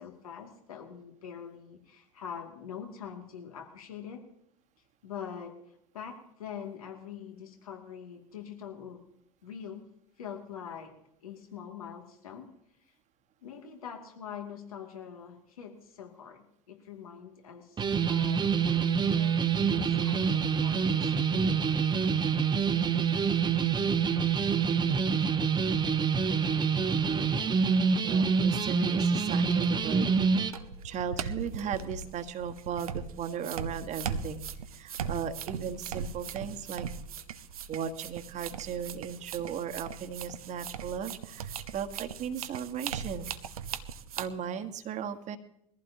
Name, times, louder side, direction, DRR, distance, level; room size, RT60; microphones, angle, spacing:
voice 1, 0.0-4.3 5.0-5.6 5.9-9.0 9.4-9.8 10.2-11.0 11.2-12.5 13.4-21.5, left 7 dB, 75° left, 2 dB, 2.4 m, -44 dB
sound 1, 17.8-30.5, right 6 dB, 25° right, 1.1 m, -26 dB
voice 2, 28.0-30.1 30.8-34.4 34.7-36.9 37.7-43.3 44.2-45.4, right 8 dB, 40° right, 8 dB, 1.5 m, -36 dB
sound 2, 29.4-44.3, right 6 dB, 75° right, 0.8 m, -39 dB
22.0 x 15.0 x 2.9 m, 0.75 s
figure-of-eight pair, 75°, 19 cm